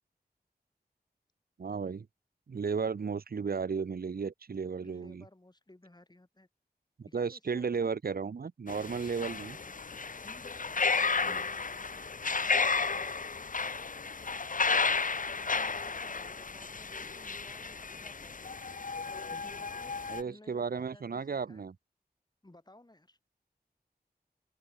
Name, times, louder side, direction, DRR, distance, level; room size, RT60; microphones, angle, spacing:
voice 1, 1.6-2.1 2.5-5.2 7.0-9.6 11.2-11.4 20.1-21.7, right 5 dB, 65° right, 0.7 m, -34 dB
voice 2, 4.8-6.5 7.1-7.9 9.0-9.7 10.2-12.1 15.3-18.7 19.3-19.9 20.2-21.7 22.4-23.2, left 1 dB, 25° left, 6.9 m, -57 dB
sound 1, 8.7-20.2, left 4 dB, 55° left, 0.9 m, -33 dB
open air
wide cardioid pair, 70°, 17 cm